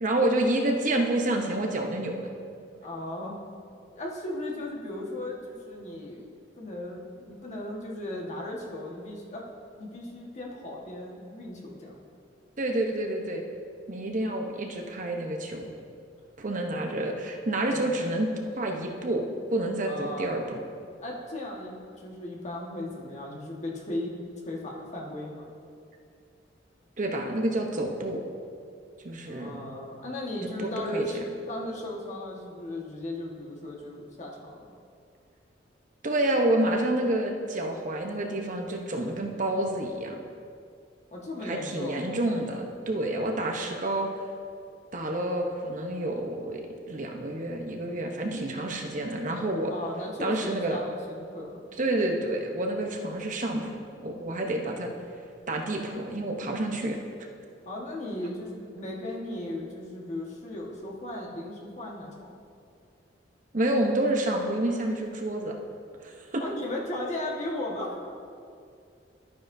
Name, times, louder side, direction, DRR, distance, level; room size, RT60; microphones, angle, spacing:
voice 1, 0.0-2.3 12.6-13.4 13.9-15.7 16.4-18.3 18.6-20.6 27.0-28.2 29.0-29.5 30.6-31.0 36.0-40.2 41.4-44.1 44.9-46.6 46.9-49.7 50.2-50.8 51.8-53.7 54.0-54.9 55.5-57.0 63.5-65.5 66.0-66.4, right 1 dB, 45° right, 2 dB, 0.8 m, -28 dB
voice 2, 2.8-3.4 3.9-6.2 6.6-9.4 9.8-12.0 17.6-18.0 19.8-20.4 21.0-24.2 24.4-25.4 29.2-31.2 31.5-34.7 41.1-42.1 49.7-51.6 57.7-62.3 66.4-68.1, left 1 dB, 40° left, -2 dB, 1.5 m, -36 dB
12.5 x 9.3 x 2.7 m, 2.3 s
head